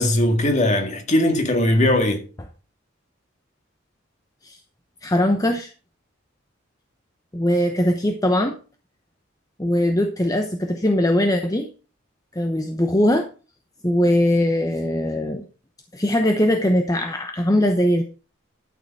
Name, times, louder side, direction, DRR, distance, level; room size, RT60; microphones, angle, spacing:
voice 1, 0.0-2.2, left 1 dB, 35° left, 1.9 m, -19 dB
voice 2, 5.0-5.7 7.3-8.6 9.6-11.7 12.3-13.3 13.8-15.4 15.9-18.0, left 1 dB, 15° left, 0.8 m, -20 dB
12.0 x 6.7 x 4.7 m
head